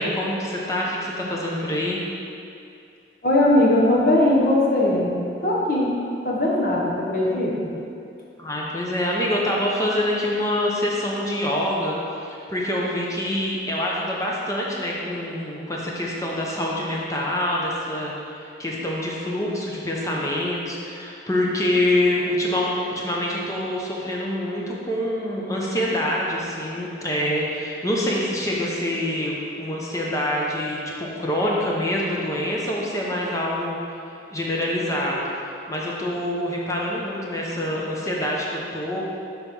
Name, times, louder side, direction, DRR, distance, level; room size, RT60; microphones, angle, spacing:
voice 1, 0.0-2.0 8.4-12.0 12.5-33.8 34.3-35.2 35.7-39.0, left 1 dB, 20° left, -4 dB, 1.0 m, -25 dB
voice 2, 3.2-5.2 5.4-7.7, left 1 dB, 55° left, -4 dB, 1.2 m, -20 dB
6.7 x 4.3 x 5.5 m, 2.5 s
head